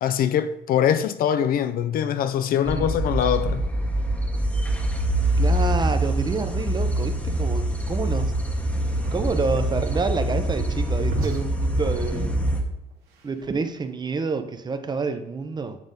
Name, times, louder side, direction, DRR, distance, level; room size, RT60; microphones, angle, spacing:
voice 1, 0.0-3.6, left 9 dB, 60° left, 0.5 m, -23 dB
voice 2, 2.6-2.9 5.4-8.3 9.1-12.3 13.2-15.8, right 4 dB, 25° right, 0.6 m, -28 dB
sound 1, 2.7-12.6, right 1 dB, 10° left, 0.9 m, -24 dB
sound 2, 8.7-13.9, right 3 dB, 85° right, 1.3 m, -38 dB
7.3 x 3.9 x 3.7 m
cardioid pair, 110°, 17 cm